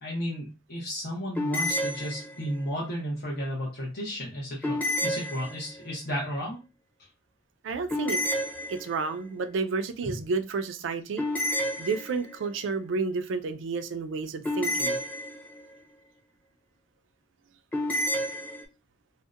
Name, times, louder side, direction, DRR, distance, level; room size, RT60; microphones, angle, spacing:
voice 1, 0.0-6.6 10.1-10.2, equal, 55° left, 0.7 m, -33 dB
sound 1, 1.4-2.7 4.6-5.9 7.9-9.2 11.2-12.5 14.4-15.7 17.7-18.6, left 1 dB, 10° left, 0.7 m, -30 dB
voice 2, 7.6-8.2 8.7-11.2 11.8-15.0, right 4 dB, 80° right, 0.4 m, -31 dB
2.7 x 2.0 x 2.3 m
head